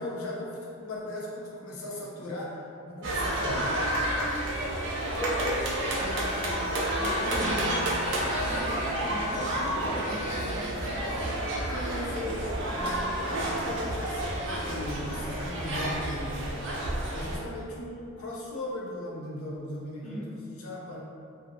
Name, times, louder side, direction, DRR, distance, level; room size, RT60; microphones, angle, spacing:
voice 1, 0.0-3.8 11.7-16.8 17.1-21.0, left 1 dB, 90° left, -5 dB, 0.6 m, -38 dB
sound 1, 3.0-17.4, right 1 dB, 60° right, 0.4 m, -30 dB
voice 2, 4.8-8.1 8.5-12.4 20.0-20.3, equal, 35° left, -7 dB, 0.5 m, -38 dB
Alarm, 5.8-6.3 6.8-7.3 7.8-8.3 8.8-9.3 9.8-10.3, left 4 dB, 55° left, 1.0 m, -43 dB
sound 2, 9.6-10.0 10.3-10.6 10.9-11.3 11.6-12.0 12.6-15.7, right 1 dB, 25° right, 0.8 m, -43 dB
2.6 x 2.4 x 2.6 m, 2.4 s
head